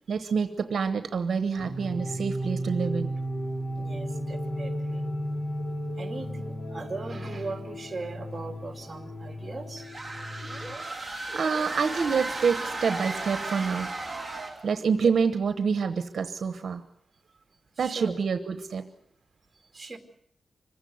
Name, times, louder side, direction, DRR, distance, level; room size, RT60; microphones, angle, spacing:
voice 1, 0.1-3.1 10.8-13.9 14.6-16.8 17.8-18.9, right 5 dB, 65° right, 10 dB, 1.1 m, -27 dB
sound 1, 1.6-10.7, equal, 85° left, 4.7 m, -34 dB
voice 2, 3.3-5.1 6.0-9.9 12.6-12.7 17.8-18.1 19.7-20.0, right 3 dB, 20° right, 5 dB, 2.7 m, -39 dB
sound 2, 9.8-14.7, right 2 dB, 5° left, 3.2 m, -35 dB
25.5 x 16.0 x 9.4 m, 0.70 s
wide cardioid pair, 175°, 0 cm